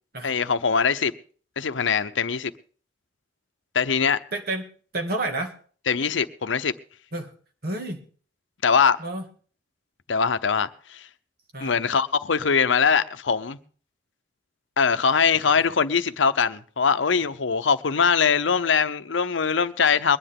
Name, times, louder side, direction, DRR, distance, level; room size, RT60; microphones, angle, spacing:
voice 1, 0.2-1.1 1.6-2.5 3.7-4.2 5.9-6.7 8.6-9.0 10.1-11.1 11.6-13.6 14.8-20.2, left 6 dB, 90° left, 0.8 m, -22 dB
voice 2, 4.3-4.6 4.9-5.5 7.1-7.3 7.6-8.0 9.0-9.2 11.5-11.8 15.5-15.7, right 2 dB, 55° right, 2.2 m, -29 dB
22.5 x 10.0 x 3.6 m
head